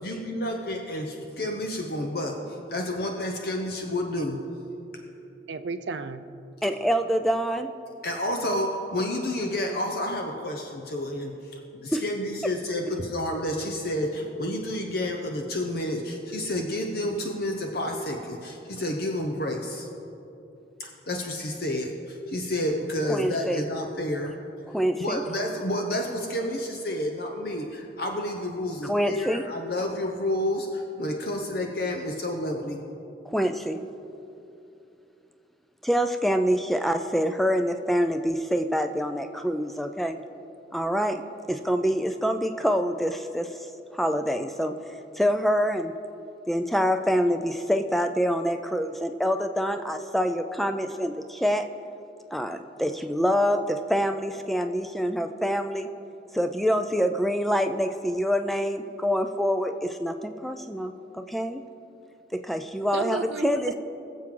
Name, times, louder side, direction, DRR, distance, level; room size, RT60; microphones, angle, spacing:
voice 1, 0.0-4.4 8.0-19.9 20.8-24.3 25.0-32.8, left 1 dB, 55° left, 2 dB, 0.8 m, -30 dB
voice 2, 5.5-6.3 62.9-63.7, right 4 dB, 70° right, 11 dB, 0.5 m, -33 dB
voice 3, 6.6-7.7 11.9-12.0 23.1-23.6 24.7-25.2 28.8-29.4 33.3-33.8 35.8-40.2 40.7-41.2 41.5-43.5 43.9-44.8 45.2-45.9 46.5-51.7 52.3-55.9 56.3-61.6 62.3-63.7, equal, ahead, 7 dB, 0.4 m, -26 dB
21.5 x 7.4 x 3.9 m, 2.8 s
head